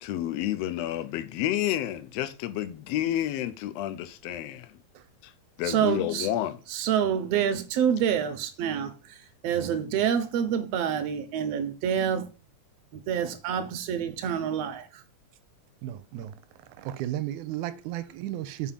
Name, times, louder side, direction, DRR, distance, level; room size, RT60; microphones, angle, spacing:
voice 1, 0.0-4.7 5.2-5.3 5.6-6.6, left 12 dB, 75° left, 1.6 m, -30 dB
voice 2, 5.6-6.3 6.7-8.9 9.4-12.3 12.9-15.0, right 8 dB, 65° right, 1.8 m, -27 dB
voice 3, 15.8-16.4 16.8-18.7, right 13 dB, 90° right, 2.1 m, -34 dB
5.6 x 5.0 x 5.8 m
omnidirectional pair, 3.4 m